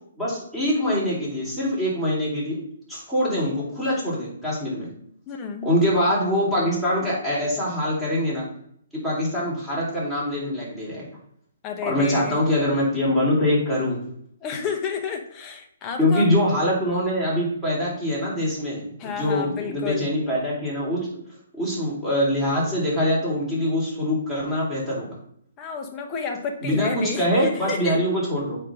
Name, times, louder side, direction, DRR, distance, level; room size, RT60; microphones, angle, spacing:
voice 1, 0.2-2.6 2.9-4.9 5.6-8.5 8.9-11.0 11.8-14.0 16.0-21.1 21.5-25.1 26.6-28.6, left 1 dB, 5° right, -8 dB, 3.2 m, -24 dB
voice 2, 5.3-5.7 11.6-12.4 14.4-16.3 19.0-20.1 25.6-28.0, left 5 dB, 20° left, 3 dB, 1.1 m, -31 dB
8.6 x 3.5 x 6.1 m, 0.68 s
hypercardioid pair, 155°, 0 cm